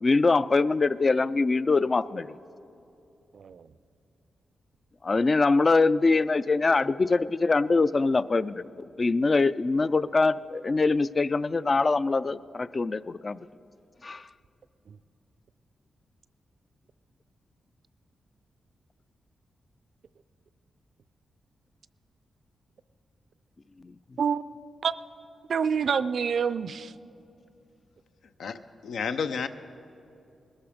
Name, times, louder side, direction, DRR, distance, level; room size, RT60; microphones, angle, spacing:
voice 1, 0.0-2.4 5.0-13.4 14.0-14.2, left 3 dB, 35° left, 17 dB, 0.3 m, -23 dB
voice 2, 3.3-3.7 14.9-15.0 24.2-24.4 24.8-24.9 25.5-26.9, right 6 dB, 65° right, 15 dB, 0.4 m, -27 dB
voice 3, 28.4-29.5, left 6 dB, 85° left, 10 dB, 0.6 m, -31 dB
20.0 x 13.0 x 5.1 m, 2.7 s
wide cardioid pair, 105°, 0 cm